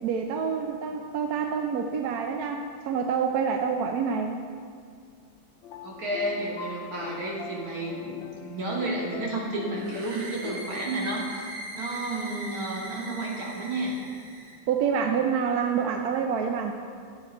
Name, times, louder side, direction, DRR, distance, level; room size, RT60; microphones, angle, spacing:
voice 1, 0.0-4.4 14.7-16.7, right 6 dB, 70° right, 4 dB, 1.0 m, -27 dB
sound 1, 5.6-11.2, left 10 dB, 90° left, 1.4 m, -42 dB
voice 2, 5.8-14.0, right 2 dB, 50° right, -3 dB, 2.3 m, -32 dB
sound 2, 9.8-14.6, right 1 dB, 85° right, 2.0 m, -40 dB
13.5 x 8.2 x 4.4 m, 2.1 s
omnidirectional pair, 2.1 m